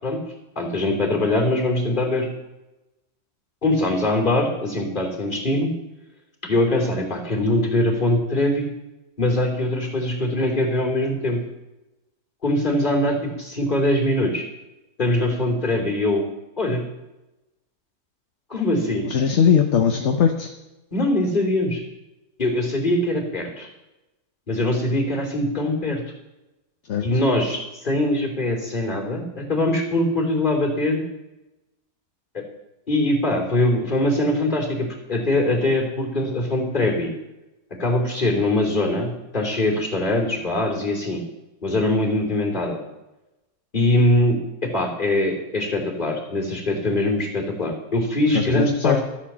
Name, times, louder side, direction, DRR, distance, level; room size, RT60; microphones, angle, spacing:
voice 1, 0.5-2.3 3.6-5.7 6.4-8.7 9.2-11.4 12.4-14.4 15.0-16.2 16.6-16.8 18.5-19.1 20.9-21.8 22.4-23.7 24.5-26.0 27.0-31.0 32.3-32.4 32.9-37.1 37.8-41.2 41.6-42.8 43.7-49.0, left 1 dB, 30° left, 0 dB, 3.2 m, -22 dB
voice 2, 19.1-20.5 26.9-27.0 48.3-49.1, left 7 dB, 55° left, 4 dB, 1.2 m, -20 dB
13.5 x 8.8 x 7.3 m, 0.98 s
omnidirectional pair, 1.6 m